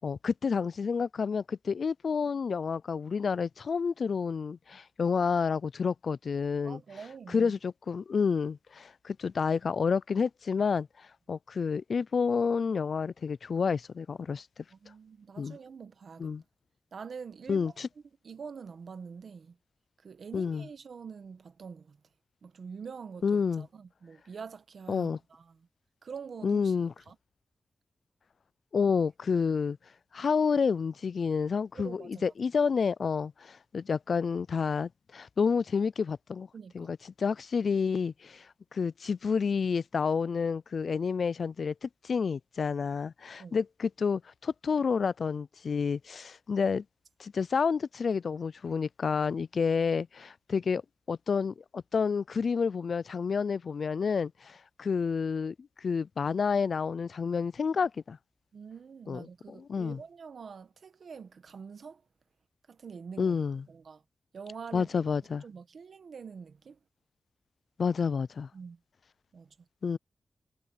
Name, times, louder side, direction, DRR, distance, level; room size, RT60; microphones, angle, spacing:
voice 1, 0.0-6.8 7.3-10.9 11.3-14.5 15.4-15.6 16.2-16.4 17.5-17.9 20.3-20.6 23.2-23.7 24.9-25.2 26.4-26.9 28.7-29.8 30.1-36.5 36.7-38.5 38.7-46.8 47.2-50.8 51.1-58.2 59.1-60.0 63.2-63.6 64.7-65.4 67.8-68.5 69.8-70.0, left 5 dB, 65° left, 0.3 m, -29 dB
voice 2, 6.6-7.5 14.7-16.3 16.9-17.8 18.2-19.6 20.0-22.0 22.4-25.7 26.0-26.7 27.1-27.2 31.7-32.2 36.5-36.9 43.4-43.6 58.5-62.0 62.7-63.4 63.7-64.0 64.3-65.0 65.4-66.8 68.5-68.8 69.3-69.6, right 6 dB, 70° right, 1.3 m, -45 dB
wide cardioid pair, 115°, 0 cm